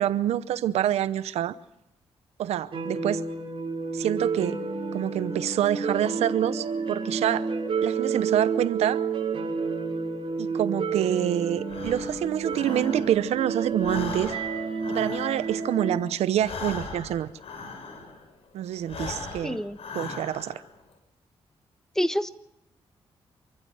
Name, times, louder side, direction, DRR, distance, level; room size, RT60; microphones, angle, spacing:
voice 1, 0.0-1.5 2.4-3.2 3.9-4.6 4.9-7.5 7.8-9.0 10.4-14.4 14.9-17.3 18.5-19.6 19.9-20.6, right 11 dB, 90° right, 0.8 m, -27 dB
sound 1, 2.7-16.0, right 4 dB, 55° right, 7.0 m, -30 dB
Breathing, 11.6-13.4 13.7-18.3 18.8-20.7, left 4 dB, 70° left, 6.2 m, -39 dB
voice 2, 19.4-19.8 22.0-22.3, equal, 5° left, 1.3 m, -26 dB
27.5 x 14.5 x 7.9 m
cardioid pair, 65°, 11 cm